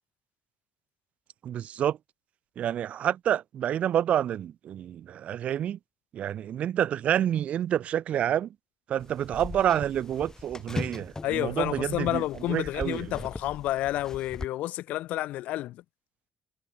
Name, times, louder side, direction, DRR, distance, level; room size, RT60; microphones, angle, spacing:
voice 1, 1.4-2.0 2.6-5.8 6.1-8.5 8.9-12.2 12.5-13.0, right 10 dB, 60° right, 0.6 m, -28 dB
sound 1, 9.0-14.5, left 3 dB, 25° left, 5.9 m, -40 dB
voice 2, 11.2-15.8, left 15 dB, 75° left, 2.0 m, -30 dB
supercardioid pair, 70°, 3 cm